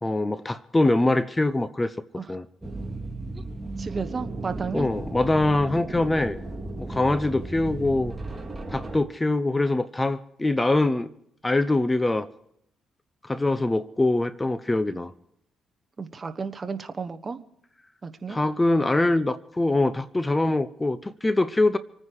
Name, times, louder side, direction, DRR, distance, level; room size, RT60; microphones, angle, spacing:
voice 1, 0.0-1.9 2.3-2.5 4.7-6.4 6.8-8.1 8.7-11.1 11.4-12.3 13.2-15.1 18.3-21.8, left 2 dB, 15° left, 14 dB, 0.8 m, -23 dB
sound 1, 2.6-9.0, right 2 dB, 15° right, 2.5 m, -35 dB
voice 2, 3.8-4.9 14.9-15.0 16.0-17.4 18.0-18.4, right 5 dB, 30° right, 8 dB, 1.3 m, -33 dB
26.5 x 9.7 x 4.8 m, 0.73 s
cardioid pair, 90°, 0 cm